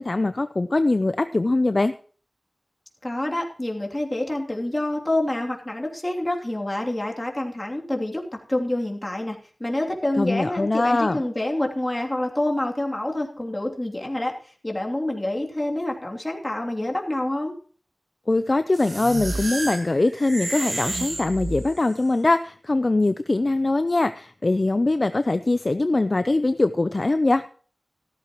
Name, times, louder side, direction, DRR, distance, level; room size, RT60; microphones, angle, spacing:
voice 1, 0.0-1.9 10.2-11.2 18.3-27.4, left 2 dB, 50° left, 11 dB, 0.5 m, -22 dB
voice 2, 3.0-17.6, left 1 dB, 25° left, 1 dB, 2.9 m, -27 dB
sound 1, 18.7-22.0, right 2 dB, 70° right, 2.1 m, -31 dB
15.0 x 13.5 x 3.0 m, 0.42 s
wide cardioid pair, 60°, 0 cm